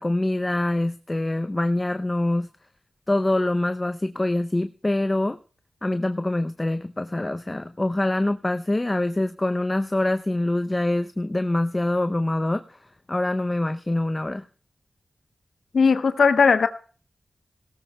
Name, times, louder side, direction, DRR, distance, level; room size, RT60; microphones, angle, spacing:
voice 1, 0.0-2.5 3.1-5.4 5.8-12.8 13.1-14.5, left 1 dB, 25° left, 9 dB, 0.5 m, -25 dB
voice 2, 15.7-16.7, left 5 dB, 80° left, 9 dB, 0.8 m, -17 dB
18.5 x 17.0 x 2.2 m, 0.39 s
cardioid pair, 65°, 0 cm